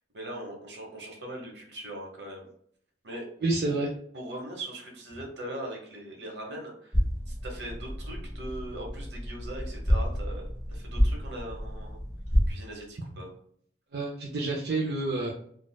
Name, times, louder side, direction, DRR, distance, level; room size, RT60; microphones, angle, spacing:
voice 1, 0.1-2.5 3.0-3.3 3.6-3.8 4.1-7.0 7.3-12.0 12.5-13.3, right 1 dB, 80° right, 0 dB, 1.0 m, -40 dB
voice 2, 3.4-3.9 13.9-15.3, right 2 dB, 60° right, -2 dB, 0.5 m, -28 dB
sound 1, 6.9-12.5, equal, 5° right, 1.5 m, -29 dB
4.1 x 2.3 x 2.3 m, 0.65 s
head